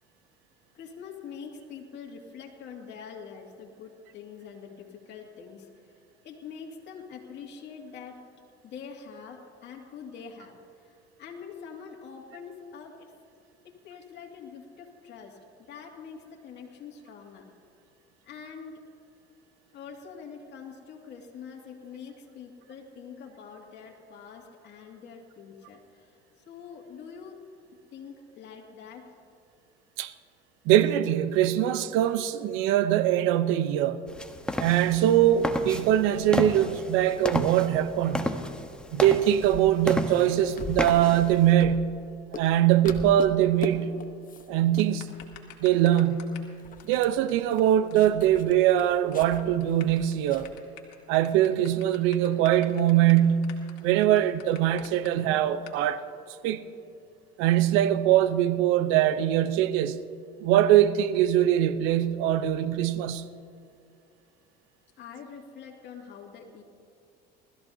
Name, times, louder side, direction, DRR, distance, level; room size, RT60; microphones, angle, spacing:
voice 1, 0.7-5.7 6.2-8.2 8.6-13.1 13.6-15.4 15.7-17.5 18.2-18.8 19.7-26.2 26.4-27.4 27.9-29.1 65.0-66.6, left 6 dB, 55° left, 2.4 m, -44 dB
voice 2, 30.7-34.0 34.6-38.3 38.9-41.8 42.3-44.0 44.5-45.2 45.6-46.4 46.8-50.5 51.1-53.5 53.8-56.0 56.4-56.6 57.4-60.0 60.4-63.3, right 11 dB, 75° right, 0.8 m, -22 dB
sound 1, 34.1-41.5, left 1 dB, 5° left, 1.1 m, -33 dB
sound 2, 39.4-42.1 42.3-42.6 42.8-43.7 44.0-44.5 44.7-44.9 45.2-45.7 46.0-46.1 46.5-50.5, left 6 dB, 40° left, 1.2 m, -41 dB
sound 3, 44.8-46.5 46.8-46.9 47.3-47.4 47.6-47.7 47.9-48.0 48.2-48.8 49.1-49.3 49.6-55.1 55.7-55.8, left 12 dB, 85° left, 1.9 m, -48 dB
20.5 x 14.0 x 2.8 m
supercardioid pair, 85°, 21 cm